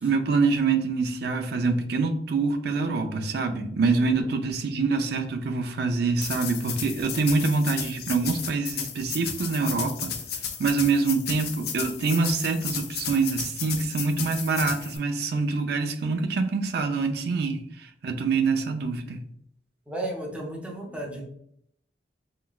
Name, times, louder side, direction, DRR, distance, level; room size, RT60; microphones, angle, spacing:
voice 1, 0.0-10.1 10.6-19.2, right 4 dB, 65° right, 6 dB, 0.4 m, -25 dB
sound 1, 6.2-15.0, left 7 dB, 60° left, 0.5 m, -34 dB
voice 2, 19.9-21.3, right 1 dB, 10° right, -2 dB, 0.7 m, -34 dB
3.8 x 2.3 x 2.3 m, 0.71 s
head